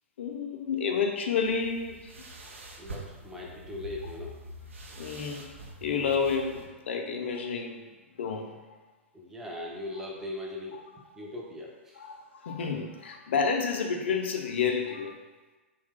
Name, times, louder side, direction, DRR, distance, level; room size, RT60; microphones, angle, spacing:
voice 1, 0.2-2.1 4.9-7.9 8.2-8.6 12.0-15.2, left 5 dB, 55° left, 3 dB, 0.4 m, -30 dB
sound 1, 1.4-6.7, right 1 dB, 65° right, 0.5 m, -45 dB
voice 2, 2.8-4.4 9.1-12.1, left 1 dB, 5° right, -3 dB, 0.4 m, -40 dB
2.8 x 2.1 x 3.4 m, 1.2 s
figure-of-eight pair, 105°, 7 cm